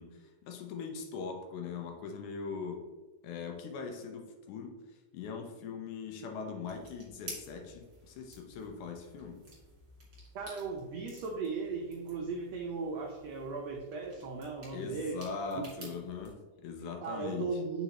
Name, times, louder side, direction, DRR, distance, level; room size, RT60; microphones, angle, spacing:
voice 1, 0.0-2.9 3.2-9.4 14.7-17.6, left 5 dB, 75° left, 3 dB, 2.0 m, -41 dB
sound 1, 6.6-16.3, right 2 dB, 35° right, 2.1 m, -53 dB
voice 2, 10.3-15.2 15.8-15.9 17.0-17.8, right 4 dB, 85° right, 0 dB, 1.4 m, -37 dB
6.9 x 4.9 x 2.9 m, 1.3 s
omnidirectional pair, 3.8 m